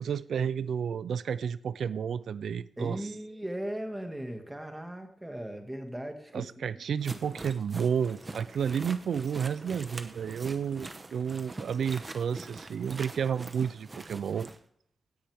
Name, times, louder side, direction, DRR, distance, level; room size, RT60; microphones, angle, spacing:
voice 1, 0.0-3.1 6.3-14.5, right 7 dB, 85° right, 16 dB, 0.4 m, -31 dB
voice 2, 2.8-6.4, right 1 dB, 10° right, 5 dB, 1.8 m, -37 dB
sound 1, 7.0-14.6, right 2 dB, 25° right, 1.0 m, -44 dB
16.5 x 10.0 x 3.5 m, 0.67 s
wide cardioid pair, 130°, 0 cm